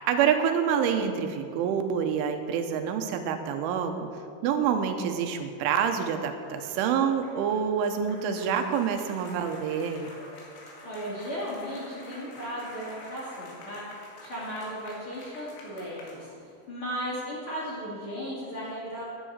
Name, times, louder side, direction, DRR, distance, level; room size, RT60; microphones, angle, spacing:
voice 1, 0.1-4.1 4.4-10.1, right 7 dB, 90° right, 6 dB, 3.3 m, -27 dB
sound 1, 5.7-16.7, left 2 dB, 70° left, 4.2 m, -48 dB
voice 2, 10.8-13.8 14.2-16.3 16.7-19.0, equal, 35° left, -7 dB, 2.5 m, -35 dB
10.5 x 10.0 x 7.2 m, 2.4 s
omnidirectional pair, 5.4 m